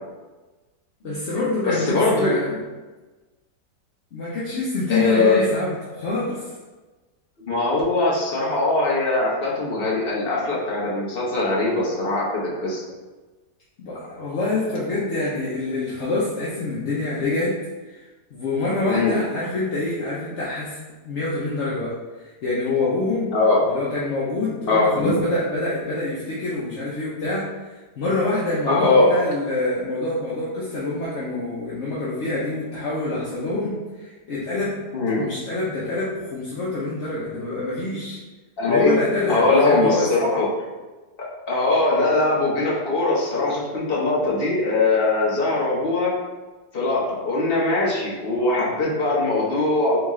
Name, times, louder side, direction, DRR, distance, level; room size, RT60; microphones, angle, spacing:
voice 1, 1.0-2.6 4.1-6.5 13.8-17.6 17.8-18.0 18.3-20.8 21.0-23.3 23.7-34.7 35.2-38.2 38.7-40.1, left 2 dB, 55° left, -7 dB, 0.8 m, -26 dB
voice 2, 1.6-2.3 4.9-5.4 7.4-12.8 18.9-19.2 23.3-23.6 24.7-25.2 28.7-29.1 34.9-35.3 38.6-38.9 39.3-40.5 41.5-46.1 46.7-50.0, left 2 dB, 40° left, -6 dB, 1.1 m, -21 dB
3.7 x 3.6 x 3.1 m, 1.2 s
omnidirectional pair, 1.9 m